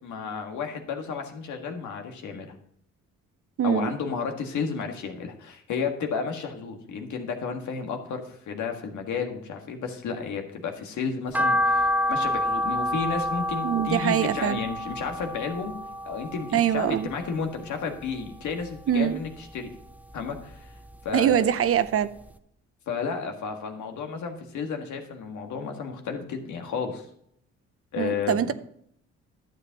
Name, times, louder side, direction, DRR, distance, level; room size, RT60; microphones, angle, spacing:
voice 1, 0.0-2.5 3.6-15.7 16.0-19.7 20.1-20.7 21.0-21.4 22.9-27.1 27.9-28.5, left 5 dB, 75° left, 4 dB, 1.7 m, -32 dB
voice 2, 3.6-3.9 13.6-14.6 16.5-17.1 18.9-19.2 21.1-22.1 28.0-28.5, right 9 dB, 50° right, 13 dB, 0.6 m, -23 dB
sound 1, 11.3-17.6 18.0-19.2 19.5-20.9 21.3-21.4 21.9-22.0 22.2-22.3, left 1 dB, 5° right, 0.6 m, -28 dB
11.5 x 7.8 x 2.9 m, 0.70 s
cardioid pair, 90°, 30 cm